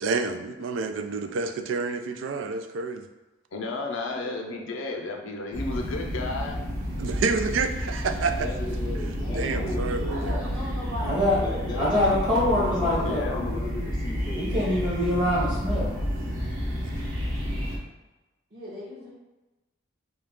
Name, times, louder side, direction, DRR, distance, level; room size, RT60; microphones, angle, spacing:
voice 1, 0.0-3.1 7.0-8.5 9.3-10.5, right 4 dB, 75° right, 7 dB, 0.3 m, -29 dB
voice 2, 3.5-6.6 13.0-13.4, left 3 dB, 80° left, 2 dB, 0.5 m, -33 dB
voice 3, 4.0-5.0 9.2-12.2 12.8-13.5 18.5-19.1, equal, 50° right, -8 dB, 1.4 m, -39 dB
sound 1, 5.5-17.8, equal, 90° right, 1.1 m, -30 dB
voice 4, 8.4-10.4 11.3-14.5, left 2 dB, 20° left, -4 dB, 0.5 m, -36 dB
voice 5, 11.0-11.4 11.7-13.3 14.4-16.0, left 1 dB, 25° right, -8 dB, 1.1 m, -24 dB
3.8 x 2.3 x 3.6 m, 1.1 s
head